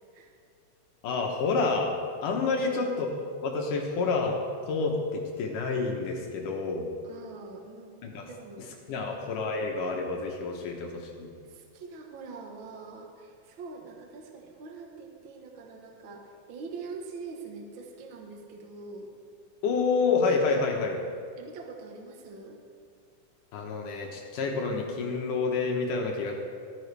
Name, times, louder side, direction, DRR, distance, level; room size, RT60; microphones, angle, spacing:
voice 1, 1.0-1.9 2.2-4.4 4.7-6.9 8.0-8.3 8.9-11.3 19.6-21.0 23.5-26.3, left 4 dB, 75° left, 1 dB, 2.4 m, -28 dB
voice 2, 7.0-7.9 8.3-9.1 11.5-19.1 21.4-22.6, right 4 dB, 90° right, 2 dB, 1.0 m, -44 dB
14.5 x 12.5 x 3.3 m, 2.2 s
omnidirectional pair, 4.0 m